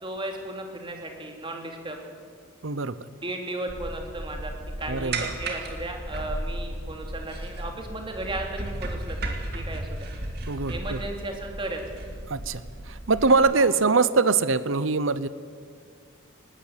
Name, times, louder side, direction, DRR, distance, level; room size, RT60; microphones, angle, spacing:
voice 1, 0.0-2.0 3.2-4.5 4.8-10.1 10.7-11.8 13.5-13.7, right 2 dB, 25° right, 2 dB, 2.8 m, -35 dB
voice 2, 2.6-3.0 4.9-5.3 10.5-11.0 12.3-15.3, right 4 dB, 80° right, 16 dB, 0.9 m, -23 dB
sound 1, 3.7-13.4, right 1 dB, 50° right, 2.6 m, -35 dB
19.5 x 18.5 x 8.1 m, 2.1 s
head